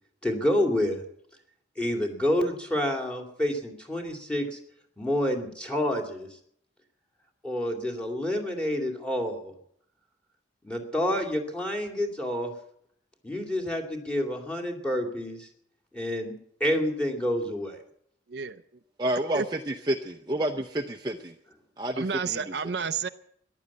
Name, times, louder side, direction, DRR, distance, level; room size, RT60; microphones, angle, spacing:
voice 1, 0.2-1.0 1.8-4.6 5.0-6.3 7.4-9.5 10.6-12.5 13.2-15.5 15.9-16.3 16.6-17.8, left 1 dB, 5° left, 3 dB, 2.4 m, -28 dB
voice 2, 18.3-18.6 19.3-19.4 22.0-23.1, right 5 dB, 60° right, 11 dB, 0.5 m, -30 dB
voice 3, 19.0-21.3 21.8-22.5, right 1 dB, 20° right, 4 dB, 0.7 m, -30 dB
14.5 x 11.0 x 8.5 m, 0.70 s
head